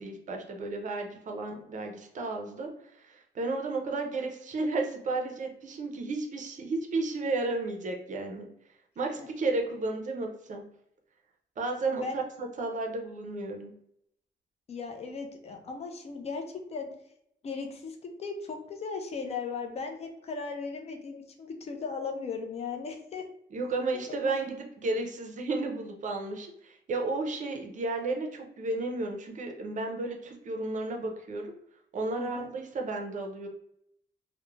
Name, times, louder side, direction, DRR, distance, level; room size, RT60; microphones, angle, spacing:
voice 1, 0.0-8.5 9.0-10.6 11.6-13.7 23.5-31.5 31.9-33.5, right 3 dB, 45° right, 3 dB, 0.5 m, -33 dB
voice 2, 14.7-16.9 17.4-23.3 24.1-24.3 32.2-32.5, left 4 dB, 35° left, 4 dB, 0.4 m, -37 dB
2.3 x 2.1 x 3.0 m, 0.75 s
wide cardioid pair, 160°, 18 cm